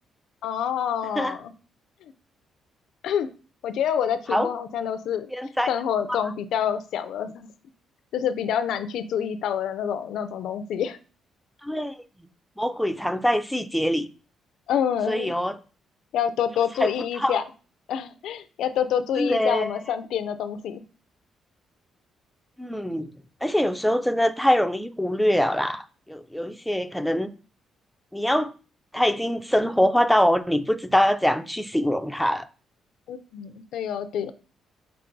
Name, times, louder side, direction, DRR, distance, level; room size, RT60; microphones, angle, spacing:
voice 1, 0.4-1.5 3.0-3.3 3.6-5.3 5.7-7.5 8.1-11.0 14.7-15.3 16.1-17.4 17.9-20.8 33.1-34.3, left 8 dB, 80° left, 0.3 m, -27 dB
voice 2, 5.3-5.7 6.1-6.2 11.6-11.9 12.6-14.1 15.1-15.6 16.8-17.4 19.2-19.7 22.6-23.1 23.4-27.3 28.1-28.5 28.9-32.5, equal, ahead, 0.3 m, -23 dB
5.6 x 3.3 x 2.6 m
cardioid pair, 90°, 0 cm